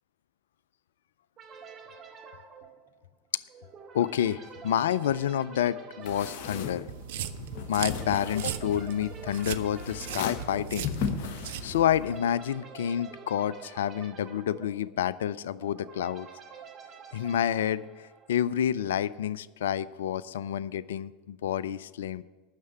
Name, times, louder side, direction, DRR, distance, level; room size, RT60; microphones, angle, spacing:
sound 1, 1.4-18.5, right 5 dB, 35° right, 1.8 m, -48 dB
voice 1, 3.9-6.8 7.7-10.9 11.6-16.3 17.1-22.2, left 10 dB, 75° left, 18 dB, 0.3 m, -29 dB
sound 2, 6.0-12.2, left 6 dB, 55° left, 1.2 m, -37 dB
sound 3, 6.9-12.0, right 11 dB, 65° right, 0.5 m, -38 dB
9.4 x 6.6 x 8.9 m, 1.2 s
hypercardioid pair, 80°, 0 cm